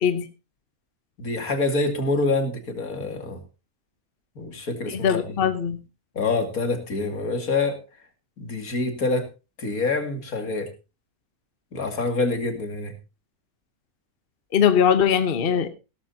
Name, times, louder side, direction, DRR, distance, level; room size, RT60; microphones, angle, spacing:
voice 1, 1.2-3.4 4.4-5.4 6.2-7.8 8.4-9.3 9.6-10.7 11.7-12.9, left 3 dB, 80° left, 5 dB, 2.8 m, -26 dB
voice 2, 4.9-5.8 14.5-15.7, left 7 dB, 45° left, 10 dB, 1.1 m, -21 dB
17.5 x 12.5 x 2.8 m, 0.29 s
omnidirectional pair, 1.5 m